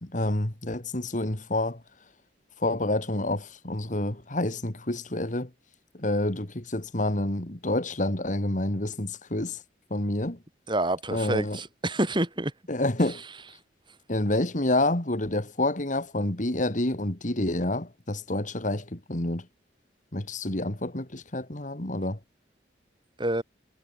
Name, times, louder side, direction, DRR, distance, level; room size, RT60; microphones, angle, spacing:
voice 1, 0.0-1.8 2.6-5.5 6.0-9.6 9.9-10.4 11.1-11.6 12.7-13.2 14.1-19.5 20.1-22.2, left 1 dB, 45° left, 2.4 m, -28 dB
voice 2, 10.7-12.5 23.2-23.4, right 1 dB, 25° right, 4.5 m, -27 dB
head